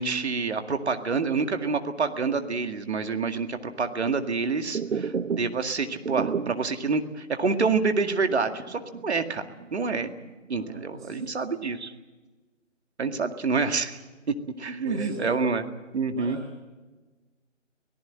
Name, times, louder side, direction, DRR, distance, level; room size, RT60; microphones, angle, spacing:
voice 1, 0.0-9.5 9.7-10.1 10.5-11.9 13.0-14.0 14.6-16.4, right 4 dB, 60° right, 7 dB, 2.1 m, -27 dB
sound 1, 4.7-6.8 7.2-7.3 7.6-7.8 8.3-9.7 10.0-10.7, right 6 dB, 75° right, 1.0 m, -31 dB
voice 2, 10.5-11.6 14.8-15.5 16.1-16.6, right 1 dB, 5° right, -4 dB, 0.6 m, -40 dB
25.5 x 18.0 x 7.6 m, 1.2 s
figure-of-eight pair, 155°, 38 cm